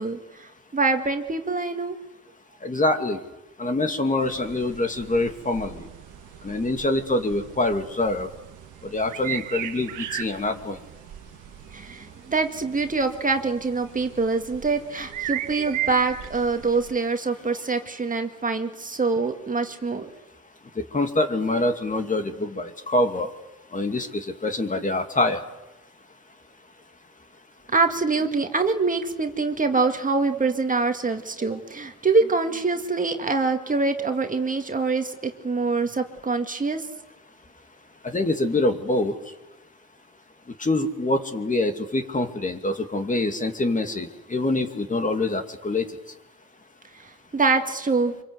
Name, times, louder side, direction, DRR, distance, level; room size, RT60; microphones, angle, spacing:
voice 1, 0.0-2.0 11.7-20.1 27.7-36.8 47.3-48.1, right 4 dB, 25° right, 5 dB, 2.1 m, -25 dB
voice 2, 2.6-3.2 3.6-5.9 6.4-8.3 8.9-10.8 20.8-23.3 23.7-25.4 38.0-39.1 40.6-45.8, left 2 dB, 25° left, 6 dB, 2.4 m, -25 dB
sound 1, 4.2-16.9, right 13 dB, 90° right, 1.4 m, -37 dB
25.5 x 24.0 x 8.1 m, 1.0 s
cardioid pair, 90°, 30 cm